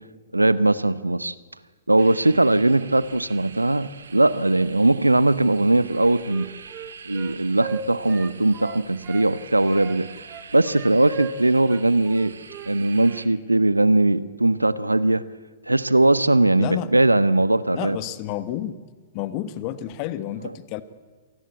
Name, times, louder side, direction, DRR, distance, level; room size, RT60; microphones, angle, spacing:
voice 1, 0.3-1.3 1.9-6.5 7.1-10.1 10.5-12.3 12.7-15.2 15.7-18.0, right 2 dB, 85° right, 17 dB, 0.9 m, -20 dB
sound 1, 2.0-13.3, right 6 dB, 65° right, 1.9 m, -44 dB
Wind instrument woodwind instrument, 5.9-9.3 9.7-12.7 13.0-13.3, right 6 dB, 25° right, 1.9 m, -39 dB
voice 2, 16.6-16.9 17.7-18.7 19.1-20.8, left 12 dB, 35° left, 13 dB, 1.4 m, -30 dB
27.0 x 18.5 x 8.5 m, 1.4 s
figure-of-eight pair, 110°, 0 cm